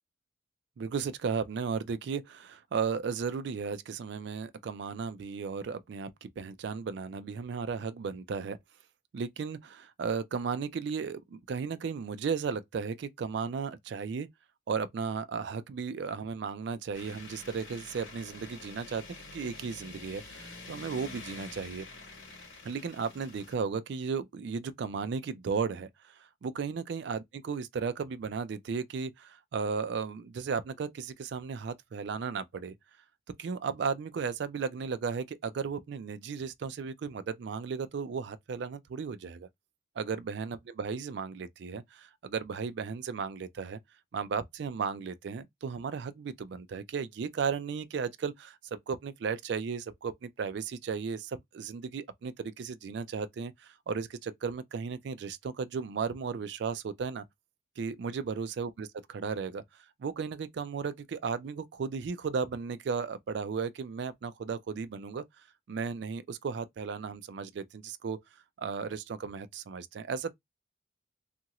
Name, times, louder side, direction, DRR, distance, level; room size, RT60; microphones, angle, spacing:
voice 1, 0.8-8.6 9.1-14.3 14.7-19.0 19.3-21.9 22.6-32.7 33.4-39.5 40.0-43.8 44.1-57.3 57.8-59.6 60.0-65.2 65.7-68.2 68.6-70.3, right 5 dB, 55° right, 0.3 m, -35 dB
sound 1, 16.9-23.5, left 3 dB, 65° left, 1.3 m, -47 dB
2.8 x 2.5 x 2.8 m
head